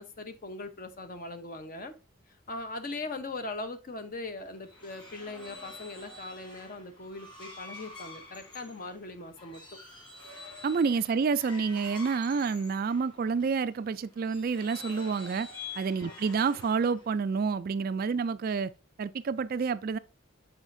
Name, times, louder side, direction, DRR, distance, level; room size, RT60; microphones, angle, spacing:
voice 1, 0.0-1.9 2.5-9.6 16.0-16.1, left 2 dB, 40° left, 0.9 m, -40 dB
sound 1, 4.4-13.5 14.2-17.2, left 3 dB, 25° left, 2.7 m, -47 dB
voice 2, 10.6-15.5 15.8-18.7 19.0-20.0, right 5 dB, 45° right, 0.3 m, -28 dB
7.2 x 4.9 x 2.6 m
head